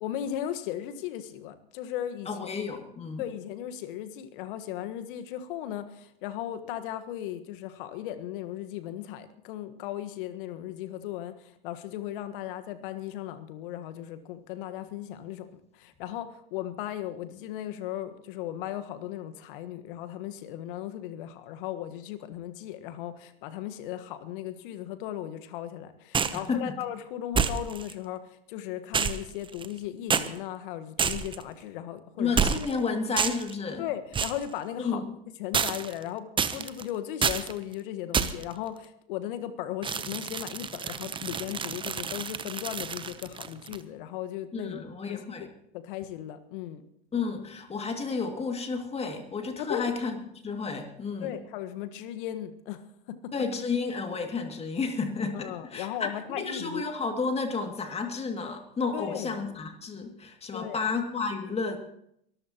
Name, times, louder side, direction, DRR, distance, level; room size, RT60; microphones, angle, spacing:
voice 1, 0.0-2.5 3.2-15.5 15.7-32.4 32.8-33.0 33.8-35.0 35.4-44.8 45.1-45.5 45.7-46.8 49.6-49.8 51.2-52.8 53.1-53.3 55.3-56.8 58.9-59.4 60.5-60.8, left 11 dB, 60° left, 10 dB, 1.5 m, -37 dB
voice 2, 2.3-3.3 26.3-26.7 32.2-33.8 34.8-35.1 44.5-45.5 47.1-50.2 50.4-51.3 53.3-56.1 56.4-61.8, left 4 dB, 20° left, 5 dB, 2.4 m, -31 dB
sound 1, 26.1-26.5 27.3-27.9 28.9-29.8 30.1-30.3 31.0-31.4 32.4-32.8 33.2-33.5 34.1-34.4 35.5-36.0 36.4-36.8 37.2-37.5 38.1-38.5 39.8-43.8, right 6 dB, 15° right, 0.8 m, -29 dB
23.5 x 14.0 x 3.0 m, 0.72 s
hypercardioid pair, 95°, 30 cm